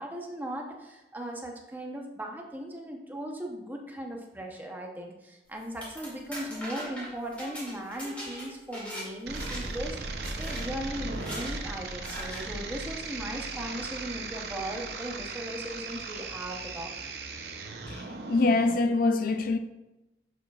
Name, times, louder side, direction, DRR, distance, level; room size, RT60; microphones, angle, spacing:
voice 1, 0.0-16.9, right 1 dB, 10° right, 0.8 m, -38 dB
sound 1, 5.6-9.1 9.3-9.8 10.2-10.6 11.1-11.5 12.0-12.4, equal, 10° left, 2.4 m, -40 dB
sound 2, 9.3-18.8, right 3 dB, 65° right, 0.7 m, -37 dB
voice 2, 17.9-19.6, left 3 dB, 50° left, 0.4 m, -25 dB
11.0 x 4.9 x 2.4 m
head